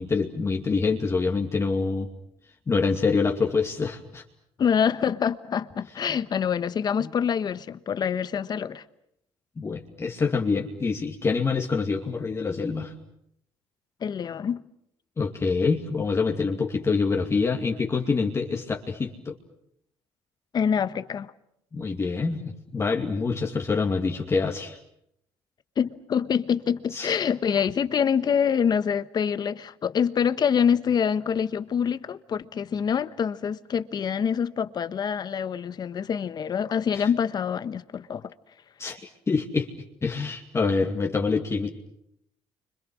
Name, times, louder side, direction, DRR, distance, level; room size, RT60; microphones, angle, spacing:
voice 1, 0.0-2.1 2.7-4.2 6.1-6.2 7.0-7.1 9.6-12.9 15.2-19.4 21.7-24.8 26.9-27.2 36.9-37.1 38.8-39.7 40.0-41.7, left 4 dB, 25° left, 2.5 m, -26 dB
voice 2, 4.6-8.8 14.0-14.6 20.5-21.3 25.8-38.3, left 7 dB, 45° left, 1.3 m, -25 dB
30.0 x 25.5 x 6.4 m
cardioid pair, 105°, 10 cm